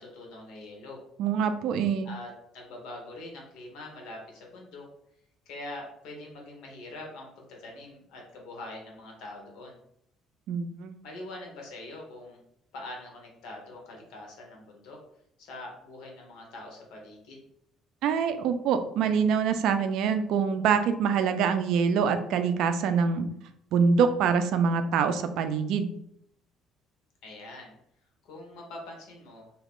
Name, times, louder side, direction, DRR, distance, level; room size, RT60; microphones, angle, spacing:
voice 1, 0.0-1.0 2.0-4.9 5.5-9.8 11.0-12.4 12.7-15.0 15.4-17.4 27.2-27.8 28.2-29.5, left 2 dB, 75° left, 0 dB, 1.0 m, -43 dB
voice 2, 1.2-2.1 10.5-10.9 18.0-23.3 23.7-25.9, right 6 dB, 70° right, 9 dB, 0.3 m, -25 dB
2.8 x 2.4 x 3.6 m, 0.73 s
cardioid pair, 145°, 0 cm